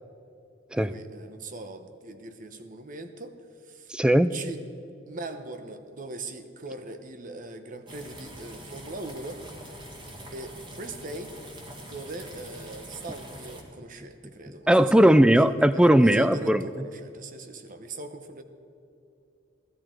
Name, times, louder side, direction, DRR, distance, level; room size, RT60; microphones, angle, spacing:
voice 1, 0.7-3.4 3.6-4.0 4.3-4.6 5.1-9.4 10.3-11.3 11.8-18.4, right 2 dB, 40° right, 8 dB, 0.9 m, -40 dB
voice 2, 3.9-4.3 14.7-16.6, right 1 dB, 5° right, 14 dB, 0.3 m, -18 dB
sound 1, 7.8-13.6, right 1 dB, 25° right, 1.7 m, -44 dB
17.0 x 13.0 x 4.5 m, 2.7 s
head